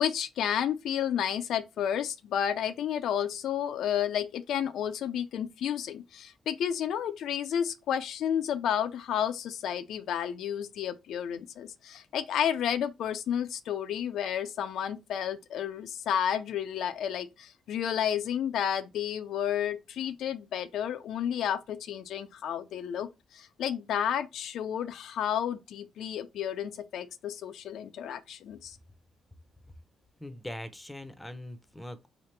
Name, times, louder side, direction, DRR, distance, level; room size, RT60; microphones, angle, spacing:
voice 1, 0.0-28.8, left 9 dB, 75° left, 0.4 m, -31 dB
voice 2, 30.2-32.1, left 1 dB, 5° left, 0.7 m, -41 dB
4.7 x 2.9 x 3.2 m
cardioid pair, 90°, 0 cm